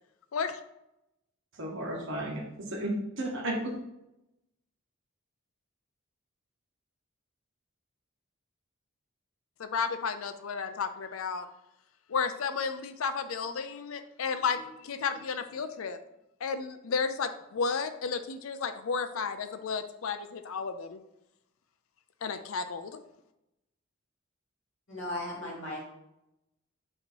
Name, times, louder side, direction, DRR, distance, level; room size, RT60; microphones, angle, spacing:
voice 1, 1.6-3.7, right 1 dB, 65° right, -2 dB, 1.3 m, -33 dB
voice 2, 9.6-11.5 12.1-16.0 16.4-21.0 22.2-23.0, left 5 dB, 90° left, 9 dB, 0.5 m, -33 dB
voice 3, 24.9-25.8, left 1 dB, 65° left, -5 dB, 2.4 m, -36 dB
7.7 x 3.0 x 4.6 m, 0.87 s
head